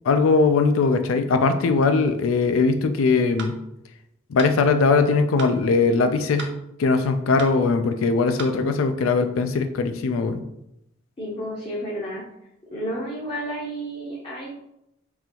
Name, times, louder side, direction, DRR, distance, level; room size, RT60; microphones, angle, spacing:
voice 1, 0.0-3.6 4.3-6.5 6.8-10.4, left 4 dB, 80° left, 8 dB, 0.4 m, -20 dB
sound 1, 3.4-3.6 4.4-4.6 5.4-5.6 6.4-6.6 7.4-7.6 8.4-8.6, right 5 dB, 55° right, 0.5 m, -35 dB
voice 2, 11.2-12.2 12.7-14.5, equal, 25° left, -5 dB, 0.6 m, -31 dB
3.9 x 2.8 x 2.9 m, 0.83 s
head